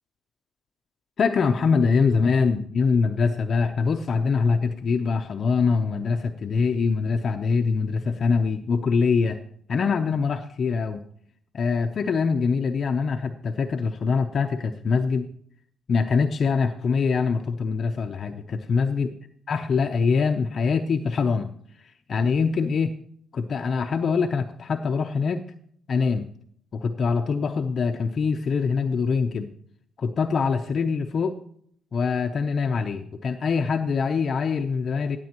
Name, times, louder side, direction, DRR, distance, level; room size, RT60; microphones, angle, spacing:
voice 1, 1.2-9.4 9.7-11.0 11.5-15.3 15.9-19.1 19.5-21.5 22.1-22.9 23.3-25.4 25.9-26.3 26.7-29.5 30.0-31.4 31.9-35.2, left 5 dB, 50° left, 4 dB, 0.6 m, -24 dB
16.0 x 8.3 x 3.0 m, 0.62 s
cardioid pair, 90°, 0 cm